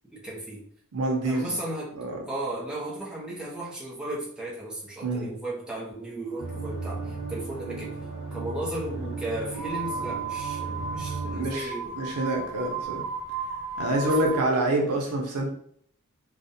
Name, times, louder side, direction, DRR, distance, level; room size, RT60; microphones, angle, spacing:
voice 1, 0.1-0.6 1.2-1.9 2.3-7.9 8.3-12.0 12.6-12.7 14.0-14.1, right 1 dB, 5° right, -6 dB, 0.6 m, -35 dB
voice 2, 0.9-1.6 1.9-2.2 5.0-5.3 11.2-11.7 11.9-13.0 13.8-15.5, right 1 dB, 85° right, 0 dB, 0.6 m, -27 dB
sound 1, 6.4-11.5, right 3 dB, 75° left, 0.9 m, -35 dB
sound 2, 9.5-14.5, right 5 dB, 35° right, 0.9 m, -34 dB
2.4 x 2.1 x 2.6 m, 0.63 s
head